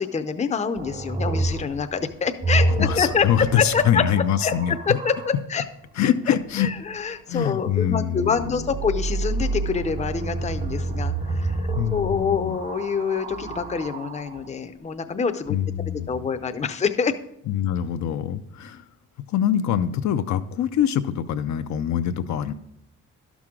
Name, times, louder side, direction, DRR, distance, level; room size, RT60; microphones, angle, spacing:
voice 1, 0.0-4.0 4.4-4.5 4.9-5.6 6.6-11.6 11.9-15.6 15.9-17.1, left 5 dB, 25° left, 8 dB, 0.6 m, -26 dB
sound 1, 0.8-5.4 8.4-14.5 15.4-16.1, right 2 dB, 25° right, 0.6 m, -28 dB
voice 2, 2.8-5.0 6.0-6.7 7.3-8.7 11.8-12.6 15.5-16.2 17.5-18.8 19.3-22.5, left 10 dB, 65° left, 8 dB, 0.5 m, -24 dB
11.5 x 6.1 x 3.7 m, 0.75 s
cardioid pair, 90°, 30 cm